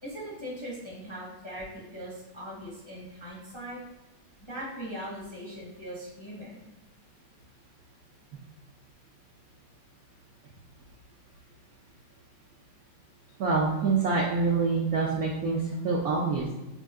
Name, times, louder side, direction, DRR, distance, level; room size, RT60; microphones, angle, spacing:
voice 1, 0.0-3.8 4.4-6.6, equal, 30° left, -7 dB, 0.5 m, -40 dB
voice 2, 13.4-16.5, right 4 dB, 75° right, -2 dB, 0.8 m, -26 dB
5.3 x 2.5 x 2.4 m, 1.1 s
omnidirectional pair, 2.1 m